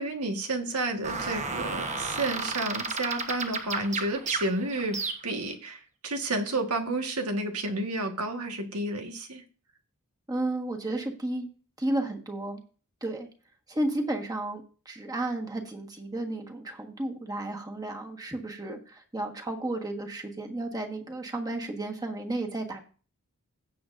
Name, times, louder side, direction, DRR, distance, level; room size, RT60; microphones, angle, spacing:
voice 1, 0.0-9.4, right 2 dB, 90° right, 5 dB, 1.6 m, -31 dB
sound 1, 1.0-5.5, right 3 dB, 35° right, 1.2 m, -33 dB
voice 2, 10.3-11.5 11.8-12.6 13.0-13.3 13.7-22.8, right 1 dB, 15° right, 3 dB, 1.5 m, -33 dB
16.5 x 7.0 x 2.6 m, 0.38 s
head